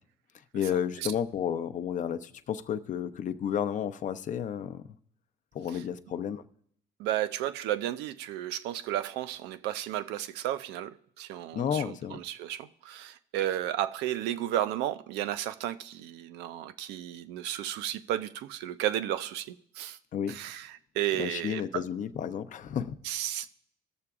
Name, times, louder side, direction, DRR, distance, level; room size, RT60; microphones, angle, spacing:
voice 1, 0.5-4.8 5.5-6.4 11.5-12.2 20.1-20.4 21.2-23.0, left 8 dB, 50° left, 0.6 m, -32 dB
voice 2, 7.0-20.0 20.3-21.8 23.0-23.5, right 12 dB, 90° right, 0.5 m, -33 dB
20.0 x 6.7 x 2.4 m
cardioid pair, 110°, 17 cm